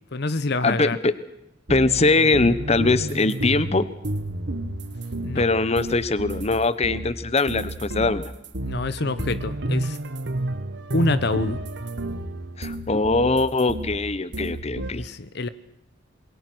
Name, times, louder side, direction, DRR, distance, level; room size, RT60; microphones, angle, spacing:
voice 1, 0.1-1.0 5.2-5.4 8.7-10.0 10.9-11.6 14.9-15.5, left 2 dB, 60° left, 15 dB, 1.0 m, -26 dB
voice 2, 0.6-1.1 1.7-3.9 5.3-8.3 12.6-15.0, left 3 dB, 35° left, 15 dB, 1.1 m, -22 dB
sound 1, 1.7-6.6 6.8-14.0 14.3-14.9, right 1 dB, 65° right, 1.5 m, -31 dB
27.5 x 22.0 x 6.2 m, 0.80 s
head